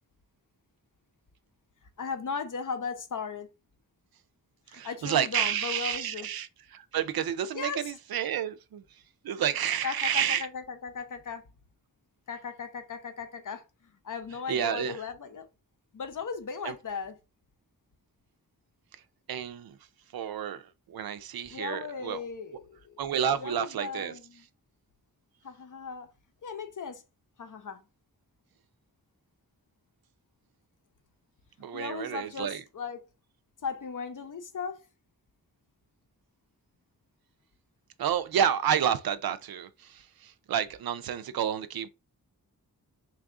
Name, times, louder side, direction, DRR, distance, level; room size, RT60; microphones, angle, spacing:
voice 1, 2.0-3.5 4.7-6.3 7.5-7.9 9.8-11.4 12.3-15.5 15.9-17.2 21.5-23.0 23.3-24.5 25.4-26.1 26.4-27.0 27.4-27.8 31.7-33.0 33.6-34.8, left 5 dB, 55° left, 0.8 m, -37 dB
voice 2, 4.7-8.8 9.2-10.5 14.5-15.0 16.6-16.7 19.3-19.7 20.1-20.6 20.9-22.2 23.0-24.1 31.6-32.6 38.0-41.9, right 9 dB, 75° right, 0.5 m, -30 dB
3.4 x 2.4 x 3.6 m
wide cardioid pair, 75°, 36 cm